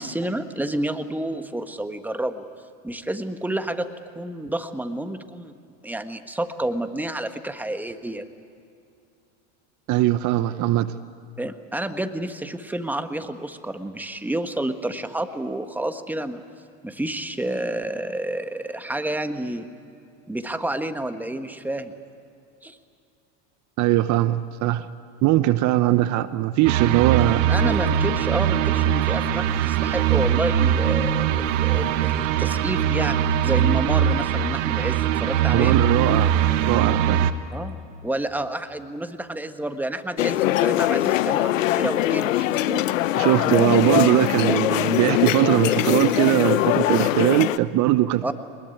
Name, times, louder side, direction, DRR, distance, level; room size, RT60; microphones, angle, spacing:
voice 1, 0.0-2.5 2.8-3.9 4.1-5.5 5.8-8.2 11.4-16.4 16.8-19.7 20.3-21.9 22.6-22.8 27.2-35.7 37.5-37.8 38.0-42.8 44.4-44.6 48.2-48.3, right 1 dB, 5° right, 8 dB, 1.5 m, -29 dB
voice 2, 9.9-10.9 23.8-24.9 25.2-27.4 35.5-37.3 43.1-48.2, right 15 dB, 50° right, 13 dB, 0.9 m, -20 dB
sound 1, 26.6-37.3, right 9 dB, 75° right, 1.3 m, -21 dB
sound 2, 40.2-47.6, left 14 dB, 85° left, 0.9 m, -22 dB
23.0 x 21.0 x 9.6 m, 2.5 s
hypercardioid pair, 95°, 38 cm